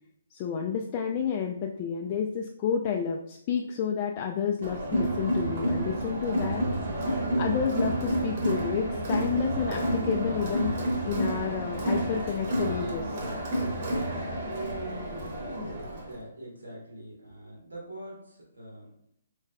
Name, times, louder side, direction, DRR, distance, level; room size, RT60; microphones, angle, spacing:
voice 1, 0.3-6.6 7.4-10.8 11.0-13.2, left 7 dB, 30° left, 1 dB, 0.3 m, -30 dB
Crowd, 4.6-16.2, right 1 dB, 45° right, 1.1 m, -30 dB
voice 2, 16.0-18.9, right 1 dB, 75° right, -4 dB, 1.4 m, -44 dB
4.5 x 3.1 x 2.3 m, 0.71 s
figure-of-eight pair, 135°, 0 cm